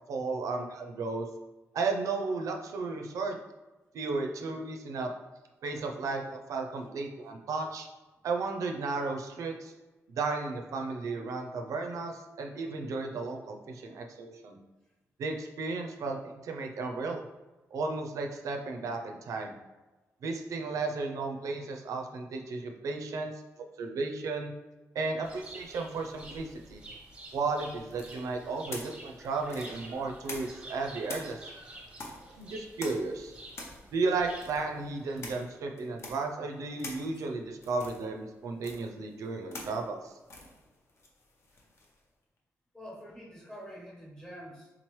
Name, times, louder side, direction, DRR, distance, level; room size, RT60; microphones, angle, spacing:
voice 1, 0.1-1.3 1.7-3.4 3.9-5.1 5.6-7.9 8.2-9.7 10.1-14.6 15.2-17.2 17.7-19.6 20.2-23.3 23.8-24.5 24.9-26.8 27.3-31.4 32.3-33.3 33.9-40.2, right 3 dB, 75° right, 3 dB, 0.4 m, -34 dB
sound 1, 25.2-35.6, right 1 dB, 20° right, 0.7 m, -49 dB
sound 2, 27.9-30.7 31.0-42.0, left 2 dB, 50° left, 0.7 m, -46 dB
voice 2, 42.7-44.7, equal, 10° left, -5 dB, 1.0 m, -46 dB
3.7 x 3.0 x 3.1 m, 1.1 s
wide cardioid pair, 145°, 6 cm